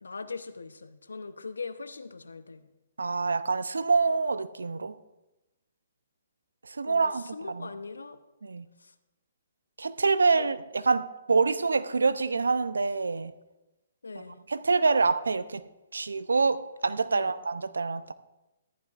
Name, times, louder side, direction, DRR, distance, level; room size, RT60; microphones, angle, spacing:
voice 1, 0.0-2.7 6.9-8.2 8.8-8.9 10.4-10.5 14.0-14.4 17.1-17.3, left 4 dB, 85° left, 11 dB, 0.8 m, -41 dB
voice 2, 3.0-4.9 6.6-7.7 8.4-8.7 9.8-13.3 14.1-14.2 14.5-15.6 15.9-18.1, right 4 dB, 85° right, 14 dB, 0.6 m, -26 dB
14.5 x 11.5 x 2.5 m, 1.0 s
hypercardioid pair, 135°, 0 cm